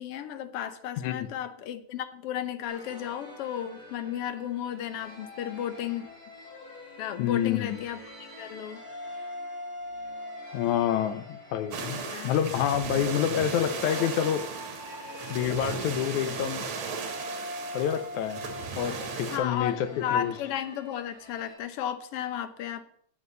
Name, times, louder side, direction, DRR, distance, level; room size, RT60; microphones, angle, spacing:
voice 1, 0.0-6.1 7.0-8.0 8.4-8.8 11.9-12.3 19.3-22.8, left 10 dB, 65° left, 11 dB, 1.6 m, -34 dB
voice 2, 1.0-1.3 7.2-7.8 10.5-14.5 15.3-16.7 17.7-18.4 18.8-20.3, left 10 dB, 90° left, 12 dB, 2.3 m, -28 dB
sound 1, 2.7-21.6, left 2 dB, 45° left, 4.3 m, -43 dB
sound 2, 11.7-19.4, right 5 dB, 80° right, 3.0 m, -36 dB
8.0 x 8.0 x 8.3 m, 0.62 s
omnidirectional pair, 3.3 m